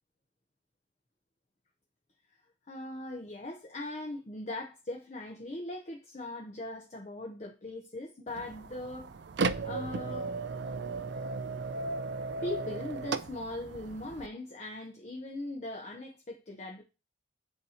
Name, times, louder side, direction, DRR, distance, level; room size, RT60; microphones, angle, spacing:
voice 1, 2.7-9.1 9.6-10.3 12.4-16.8, left 1 dB, 35° left, 0.7 m, -40 dB
sound 1, 8.3-14.3, right 4 dB, 60° right, 0.4 m, -35 dB
8.0 x 2.8 x 4.2 m
head